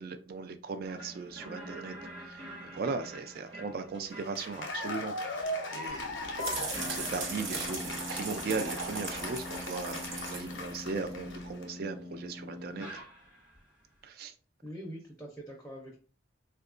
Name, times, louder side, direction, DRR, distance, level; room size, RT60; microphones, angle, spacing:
voice 1, 0.0-2.5 2.7-13.0 14.0-14.3, right 4 dB, 50° right, 0.3 m, -38 dB
sound 1, 0.8-13.6, left 1 dB, 25° right, 0.8 m, -45 dB
Cheering / Applause, 4.1-11.6, left 2 dB, 75° left, 0.6 m, -39 dB
sound 2, 5.9-11.5, right 3 dB, 85° right, 0.8 m, -38 dB
voice 2, 14.6-16.0, equal, 5° left, 0.5 m, -44 dB
3.5 x 2.2 x 2.4 m
head